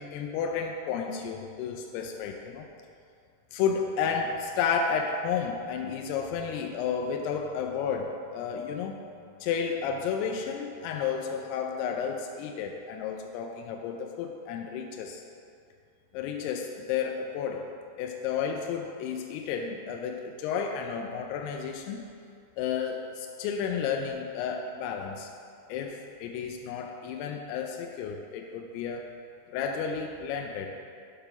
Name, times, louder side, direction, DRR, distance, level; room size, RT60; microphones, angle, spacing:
voice 1, 0.0-2.7 3.5-9.0 9.4-15.2 16.1-17.7 18.0-22.0 22.6-25.3 25.7-29.1 29.5-30.8, left 6 dB, 85° left, 2 dB, 2.5 m, -32 dB
6.8 x 4.7 x 5.6 m, 2.4 s
omnidirectional pair, 4.8 m